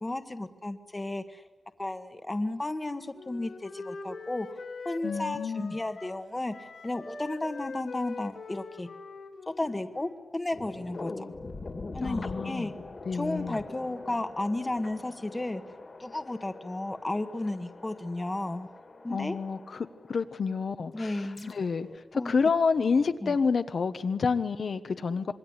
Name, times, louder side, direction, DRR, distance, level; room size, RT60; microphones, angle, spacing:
voice 1, 0.0-1.4 1.8-4.6 4.8-6.5 6.8-8.9 9.5-11.3 11.9-12.7 13.1-15.6 16.0-18.7 19.0-19.4 20.9-21.5 22.1-22.3 23.2-23.4, left 2 dB, 20° left, 9 dB, 1.3 m, -33 dB
Wind instrument woodwind instrument, 2.7-10.4, left 4 dB, 80° left, 3.4 m, -43 dB
voice 2, 5.0-5.7 12.0-12.7 13.1-13.6 19.1-21.9 22.1-25.3, left 5 dB, 60° left, 9 dB, 1.2 m, -29 dB
sound 1, 10.5-20.6 21.1-22.0, left 3 dB, 40° left, 2.2 m, -43 dB
26.5 x 23.0 x 9.7 m, 1.1 s
wide cardioid pair, 180°, 0 cm